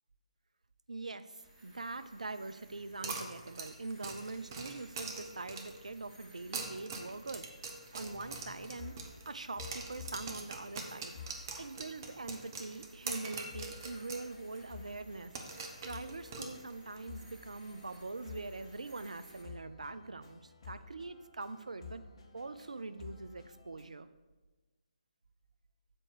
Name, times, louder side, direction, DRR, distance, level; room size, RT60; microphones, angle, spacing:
voice 1, 0.9-9.0 9.3-22.0 22.3-24.1, right 3 dB, 70° right, 12 dB, 0.5 m, -43 dB
sound 1, 1.4-19.4, right 2 dB, 15° right, 1.6 m, -59 dB
sound 2, 3.0-5.9 6.4-9.3 9.6-14.3 14.6-14.7 15.3-17.0, right 4 dB, 30° right, 0.9 m, -43 dB
sound 3, 8.0-10.8 11.1-12.4 13.5-23.9, left 6 dB, 45° left, 1.2 m, -52 dB
7.5 x 4.6 x 6.5 m, 1.2 s
figure-of-eight pair, 140°, 4 cm